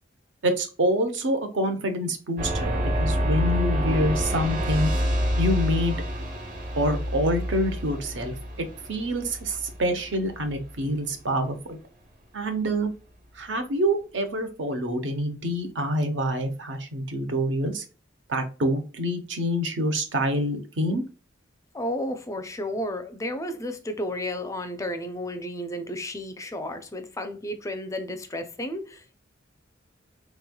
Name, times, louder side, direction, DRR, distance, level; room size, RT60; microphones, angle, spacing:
voice 1, 0.4-4.9 5.4-6.0 6.7-11.8 12.3-12.9 13.4-17.8 18.3-21.0, equal, 70° right, 0.8 m, -26 dB
sound 1, 2.4-10.9, equal, 45° right, 1.2 m, -28 dB
voice 2, 21.7-29.1, left 1 dB, 15° left, 0.4 m, -32 dB
3.4 x 3.1 x 2.2 m
head